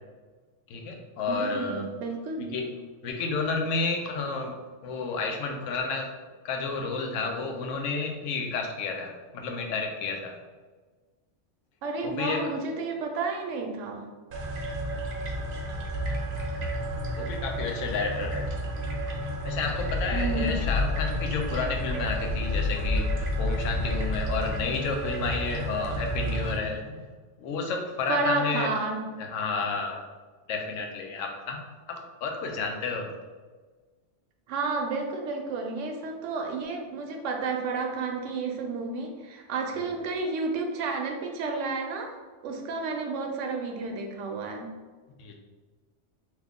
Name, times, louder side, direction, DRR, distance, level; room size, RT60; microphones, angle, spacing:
voice 1, 0.7-1.9 2.5-2.7 3.0-4.5 4.8-6.1 6.4-10.3 12.0-12.5 14.9-15.0 17.2-18.4 19.4-27.0 27.4-28.7 29.2-30.0 30.5-31.6 31.9-33.1 45.2-45.3, left 4 dB, 85° left, 2 dB, 0.9 m, -31 dB
voice 2, 1.3-2.6 11.8-14.1 20.1-20.7 28.1-29.0 34.5-42.1 42.4-44.7, right 3 dB, 80° right, 2 dB, 0.9 m, -31 dB
sound 1, 14.3-26.6, left 1 dB, 55° right, 0.7 m, -30 dB
3.0 x 2.3 x 3.5 m, 1.3 s
omnidirectional pair, 1.3 m